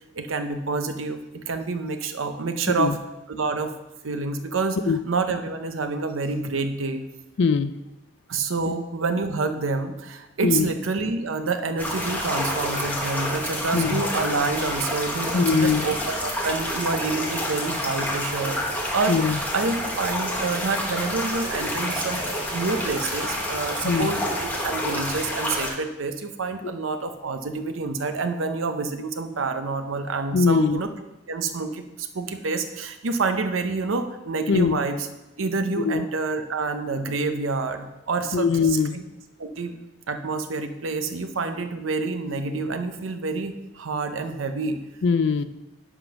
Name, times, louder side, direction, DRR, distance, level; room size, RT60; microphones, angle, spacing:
voice 1, 0.1-2.9 3.3-3.7 4.0-4.8 5.0-7.0 8.3-22.2 22.5-30.9 31.3-35.1 35.4-38.5 38.9-39.0 39.4-39.8 40.1-44.8, right 3 dB, 80° right, 8 dB, 0.7 m, -28 dB
voice 2, 7.4-7.7 10.4-10.7 13.7-14.0 15.3-15.9 19.1-19.4 23.8-24.1 26.6-26.7 30.3-30.8 34.5-34.8 35.8-36.0 38.3-39.0 45.0-45.4, left 5 dB, 60° left, 12 dB, 0.4 m, -21 dB
sound 1, 11.8-25.7, left 1 dB, 10° left, 0.9 m, -28 dB
10.0 x 3.7 x 5.8 m, 1.0 s
head